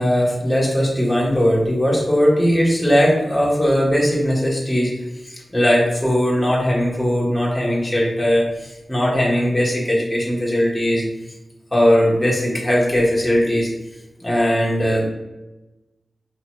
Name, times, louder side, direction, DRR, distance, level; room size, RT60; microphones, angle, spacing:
voice 1, 0.0-4.9 5.2-11.0 11.7-13.7 14.2-15.1, equal, 10° left, -5 dB, 1.3 m, -19 dB
4.8 x 2.9 x 3.1 m, 1.1 s
wide cardioid pair, 80°, 0 cm